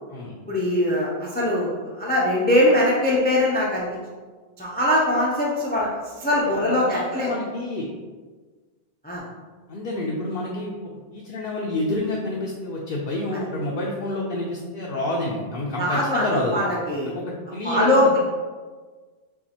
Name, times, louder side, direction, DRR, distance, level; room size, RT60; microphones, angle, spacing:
voice 1, 0.5-1.7 1.9-4.0 4.6-7.3 9.0-9.2 13.3-13.4 15.8-17.1 17.6-18.2, left 1 dB, 10° left, -5 dB, 0.5 m, -21 dB
voice 2, 6.9-7.9 9.7-10.7 11.1-16.6 17.0-18.1, left 1 dB, 65° left, -4 dB, 0.8 m, -28 dB
6.9 x 2.4 x 2.8 m, 1.4 s
omnidirectional pair, 1.1 m